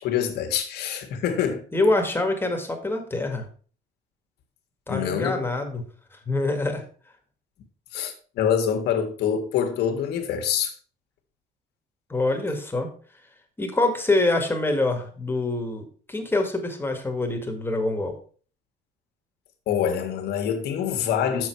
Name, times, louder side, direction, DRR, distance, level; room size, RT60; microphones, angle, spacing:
voice 1, 0.0-1.6 4.9-5.4 7.9-10.7 19.7-21.5, left 8 dB, 75° left, 1.7 m, -25 dB
voice 2, 1.7-3.5 4.9-5.8 6.3-6.8 12.1-12.9 13.6-18.2, left 2 dB, 15° left, 1.8 m, -25 dB
7.1 x 6.7 x 4.6 m
cardioid pair, 110°, 17 cm